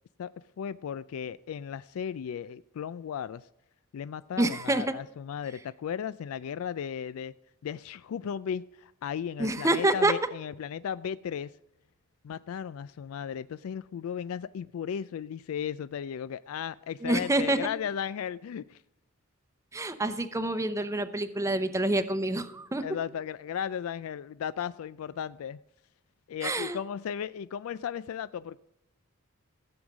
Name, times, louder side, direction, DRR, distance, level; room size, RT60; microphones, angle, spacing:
voice 1, 0.2-3.5 3.9-7.3 7.6-11.5 12.2-18.8 22.8-25.6 26.3-28.6, left 8 dB, 85° left, 17 dB, 0.3 m, -35 dB
voice 2, 4.4-5.0 9.4-10.1 17.0-17.6 19.7-22.8 26.4-26.8, right 2 dB, 15° right, 9 dB, 0.7 m, -27 dB
15.5 x 7.9 x 6.1 m, 0.85 s
head